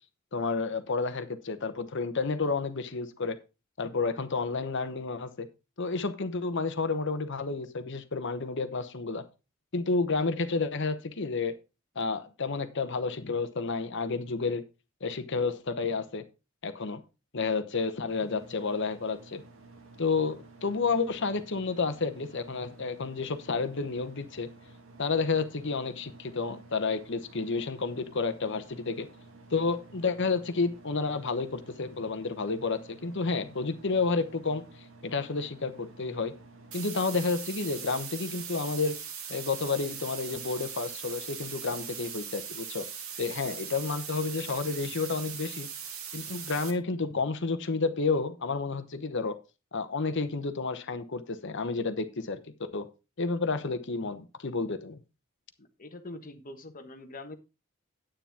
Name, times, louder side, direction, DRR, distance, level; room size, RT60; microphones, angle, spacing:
voice 1, 0.3-3.4 3.8-5.5 5.8-9.3 9.7-11.5 11.9-14.6 15.0-16.2 16.6-17.0 17.3-19.4 20.0-24.5 25.0-29.1 29.5-34.6 35.0-36.3 36.7-39.0 39.3-42.9 43.2-45.7 46.1-49.4 49.7-52.4 52.7-52.9 53.2-55.0, left 4 dB, 60° left, 10 dB, 1.0 m, -30 dB
sound 1, 18.1-36.8, right 2 dB, 65° right, 1.8 m, -53 dB
sound 2, 36.7-46.7, right 7 dB, 85° right, 1.9 m, -40 dB
voice 2, 55.6-57.4, left 2 dB, 40° left, 7 dB, 1.3 m, -44 dB
9.9 x 8.9 x 3.6 m, 0.28 s
head